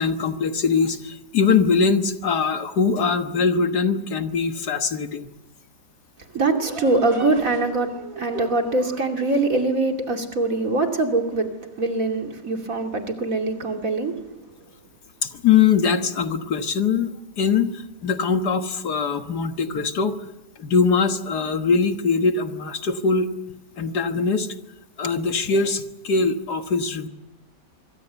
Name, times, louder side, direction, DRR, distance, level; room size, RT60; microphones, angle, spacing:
voice 1, 0.0-5.3 15.2-17.1 17.4-17.7 18.0-20.2 20.6-23.3 23.8-24.5 25.0-27.1, left 5 dB, 65° left, 7 dB, 2.0 m, -22 dB
voice 2, 6.3-11.5 11.8-14.1, right 2 dB, 50° right, 4 dB, 3.0 m, -23 dB
25.5 x 24.0 x 8.1 m, 0.95 s
omnidirectional pair, 1.9 m